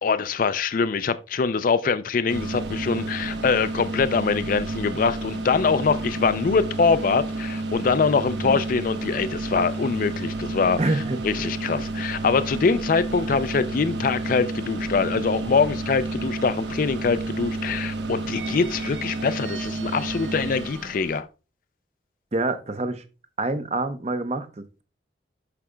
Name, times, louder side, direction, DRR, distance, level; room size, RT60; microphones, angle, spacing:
voice 1, 0.0-21.3, left 5 dB, 50° left, 0.4 m, -23 dB
sound 1, 2.3-21.2, right 2 dB, 70° right, 1.0 m, -31 dB
voice 2, 8.3-8.6 10.8-11.2 22.3-23.0 23.4-24.8, right 2 dB, 35° right, 0.7 m, -27 dB
11.5 x 4.9 x 2.2 m
head